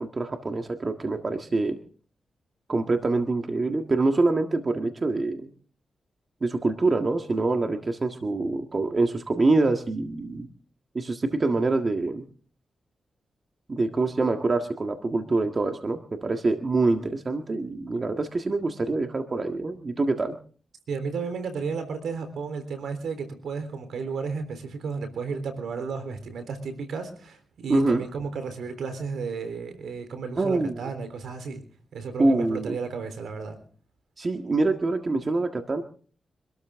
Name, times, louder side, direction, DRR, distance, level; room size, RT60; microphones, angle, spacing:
voice 1, 0.0-1.8 2.7-5.5 6.4-10.5 10.9-12.2 13.7-20.4 27.7-28.1 30.4-30.8 32.2-32.8 34.2-35.8, right 3 dB, 45° right, 5 dB, 1.7 m, -25 dB
voice 2, 20.9-31.6 31.9-33.6, right 5 dB, 85° right, 9 dB, 3.6 m, -33 dB
25.5 x 13.0 x 3.7 m, 0.43 s
cardioid pair, 60°, 0 cm